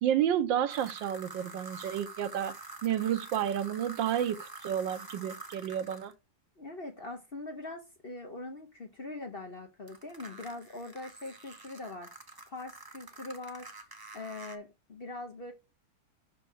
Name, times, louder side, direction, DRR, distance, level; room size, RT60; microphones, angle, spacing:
voice 1, 0.0-2.5 2.8-6.1, right 10 dB, 80° right, 1.5 m, -30 dB
sound 1, 0.7-6.1 9.9-14.6, right 3 dB, 25° right, 0.5 m, -47 dB
voice 2, 6.6-12.1 12.5-13.7 14.1-15.5, left 2 dB, 40° left, 1.0 m, -42 dB
6.2 x 4.5 x 6.2 m
omnidirectional pair, 2.0 m